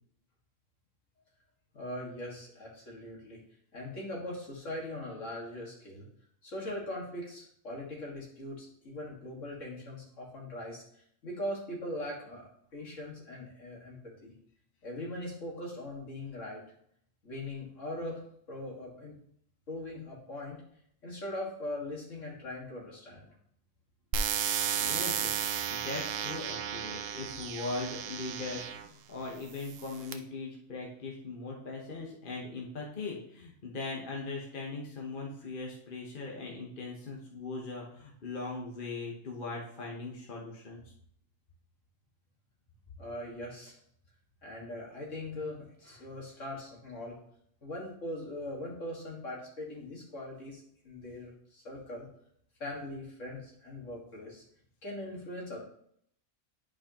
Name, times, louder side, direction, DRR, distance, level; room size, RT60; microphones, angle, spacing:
voice 1, 1.7-3.4 3.7-6.1 6.4-10.8 11.2-14.3 14.8-16.6 17.2-19.2 19.7-20.6 21.0-23.3 43.0-43.8 44.4-47.2 47.6-52.1 52.6-54.4 54.8-55.6, left 1 dB, 60° left, -3 dB, 2.2 m, -41 dB
sound 1, 24.1-28.9 29.6-30.1, right 8 dB, 70° right, 0.9 m, -33 dB
voice 2, 24.8-25.3 25.7-40.8, left 3 dB, 40° left, -2 dB, 1.2 m, -40 dB
10.5 x 4.8 x 2.9 m, 0.68 s
omnidirectional pair, 1.4 m